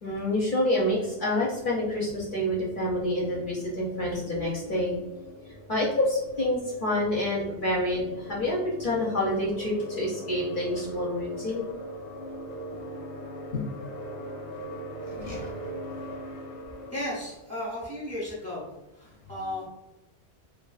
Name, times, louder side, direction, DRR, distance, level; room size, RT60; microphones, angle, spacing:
voice 1, 0.0-5.0 5.7-11.6 13.5-13.6 15.1-15.5, left 1 dB, 60° left, -4 dB, 0.6 m, -28 dB
sound 1, 0.8-17.4, equal, 85° left, 0.9 m, -41 dB
voice 2, 16.9-18.7 18.9-19.7, left 1 dB, 15° right, -7 dB, 0.7 m, -35 dB
2.5 x 2.5 x 2.3 m, 0.98 s
omnidirectional pair, 1.1 m